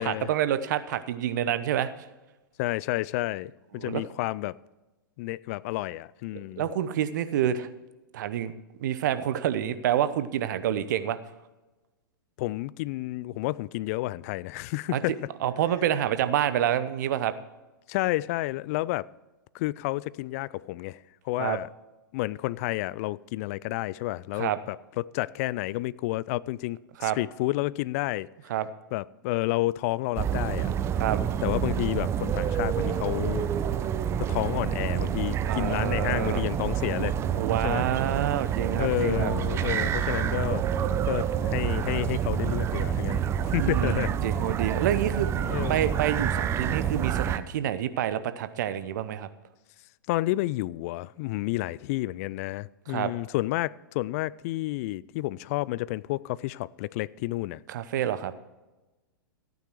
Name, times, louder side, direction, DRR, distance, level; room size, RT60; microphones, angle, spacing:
voice 1, 0.0-1.9 3.8-4.1 6.6-7.7 8.1-8.5 8.8-11.2 14.9-15.0 15.4-17.3 21.4-21.6 24.4-24.6 27.0-27.2 28.5-28.7 31.0-31.2 35.5-36.4 37.3-39.3 43.6-45.3 45.7-49.3 52.9-53.1 57.7-58.3, right 10 dB, 55° right, 0.8 m, -27 dB
voice 2, 2.6-4.6 5.2-6.6 12.4-15.3 17.9-19.1 19.5-21.0 21.3-21.7 22.1-28.3 28.9-30.7 31.4-33.5 34.3-37.2 37.6-37.9 38.8-40.6 41.1-44.1 45.5-45.9 50.1-57.6, left 18 dB, 45° left, 0.4 m, -30 dB
sound 1, 30.2-47.4, right 9 dB, 25° right, 0.6 m, -28 dB
14.5 x 9.3 x 4.6 m
figure-of-eight pair, 105°, 12 cm